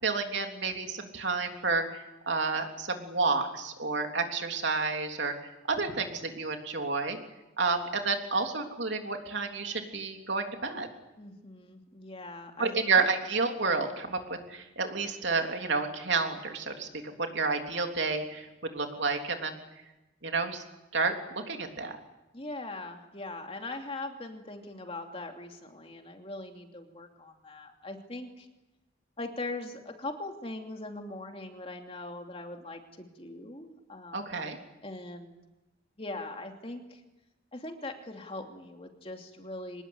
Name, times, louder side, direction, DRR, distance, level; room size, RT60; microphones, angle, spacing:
voice 1, 0.0-7.2 7.6-10.9 12.6-18.5 18.7-19.6 20.2-20.6 20.9-22.0 34.1-34.6, right 4 dB, 65° right, 4 dB, 3.3 m, -30 dB
voice 2, 11.2-13.1 22.3-28.5 29.2-34.3 34.8-35.4 36.0-37.0 37.5-39.8, left 2 dB, 30° left, 3 dB, 2.8 m, -41 dB
25.0 x 20.0 x 9.7 m, 1.0 s
head